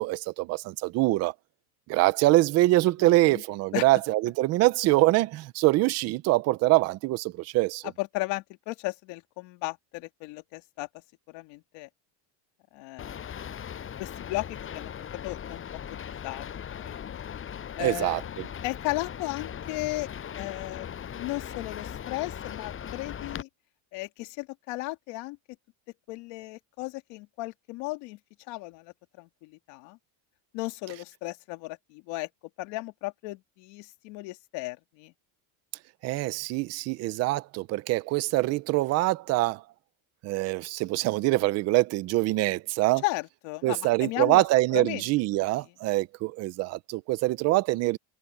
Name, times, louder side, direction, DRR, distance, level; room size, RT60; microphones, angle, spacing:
voice 1, 0.0-1.3 1.9-7.8 17.8-18.5 36.0-39.6 40.2-43.0 43.6-48.0, right 18 dB, 35° right, 0.4 m, -24 dB
voice 2, 3.0-3.4 3.7-3.9 7.8-10.9 11.3-11.9 12.7-13.3 14.0-14.9 15.2-15.6 15.9-16.5 16.8-17.2 17.8-18.2 18.6-20.1 20.3-23.5 23.9-25.4 26.1-28.2 28.5-30.0 30.5-32.3 32.6-35.1 43.0-44.4 44.7-45.1, left 21 dB, 60° left, 2.2 m, -35 dB
sound 1, 13.0-23.4, left 8 dB, 25° left, 7.1 m, -39 dB
cardioid pair, 175°, 49 cm